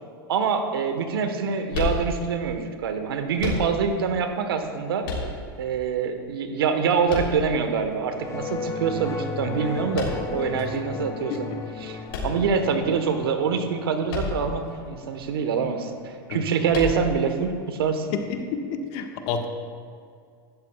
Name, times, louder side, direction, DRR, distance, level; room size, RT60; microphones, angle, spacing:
voice 1, 0.3-5.1 5.6-11.5 11.8-12.0 12.2-18.1, right 6 dB, 85° right, 7 dB, 1.2 m, -25 dB
sound 1, 1.7-2.5 3.4-4.1 5.0-5.8 7.1-7.9 9.9-10.5 12.1-13.0 14.1-14.7 14.9-15.0 16.7-17.3, left 4 dB, 80° left, 3.2 m, -30 dB
sound 2, 8.1-16.7, left 5 dB, 25° left, 1.0 m, -36 dB
voice 2, 18.1-19.5, left 5 dB, 55° left, 4 dB, 1.4 m, -30 dB
15.5 x 13.0 x 2.3 m, 2.2 s
hypercardioid pair, 110°, 12 cm